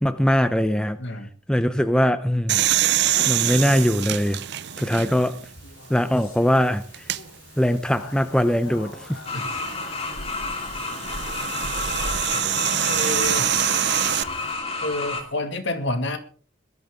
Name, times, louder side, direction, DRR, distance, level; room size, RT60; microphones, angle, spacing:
voice 1, 0.0-1.0 1.5-2.9 3.2-4.4 4.8-5.4 5.9-7.1 7.6-9.2, equal, 5° left, 0.7 m, -21 dB
voice 2, 1.0-1.3 9.3-9.4 12.3-12.4 12.9-13.5 14.8-16.2, left 2 dB, 60° left, 1.9 m, -28 dB
sound 1, 2.5-5.4 6.0-6.1 6.9-7.2 9.3-14.2, right 12 dB, 55° right, 0.6 m, -25 dB
Speech, 2.6-14.5, left 2 dB, 85° left, 3.9 m, -46 dB
sound 2, 9.3-15.2, left 3 dB, 30° left, 2.7 m, -30 dB
20.5 x 12.5 x 3.7 m
head